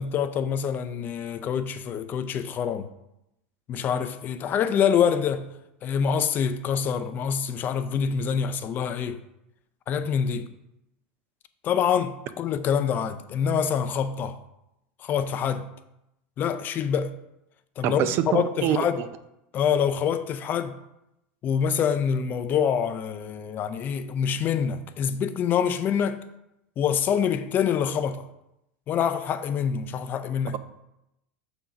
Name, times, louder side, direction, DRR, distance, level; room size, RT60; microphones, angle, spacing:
voice 1, 0.0-2.9 3.7-5.5 5.8-9.2 9.9-10.5 11.6-14.4 15.0-15.6 16.4-17.1 17.8-19.0 19.5-20.7 21.4-26.2 26.8-28.3 28.9-30.6, left 7 dB, 35° left, 0.5 m, -26 dB
voice 2, 17.8-19.1, right 11 dB, 45° right, 0.5 m, -25 dB
6.1 x 3.9 x 5.7 m
supercardioid pair, 135°, 6 cm